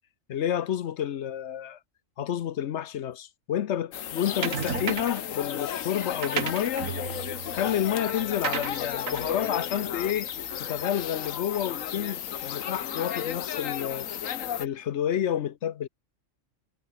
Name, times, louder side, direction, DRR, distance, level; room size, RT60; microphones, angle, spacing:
voice 1, 0.3-1.8 2.2-6.9 7.5-10.3 10.6-14.1 14.6-15.9, left 10 dB, 65° left, 1.0 m, -30 dB
sound 1, 3.9-14.7, left 9 dB, 80° left, 1.3 m, -34 dB
sound 2, 4.4-5.3 6.0-10.7, right 7 dB, 80° right, 1.8 m, -35 dB
omnidirectional pair, 1.4 m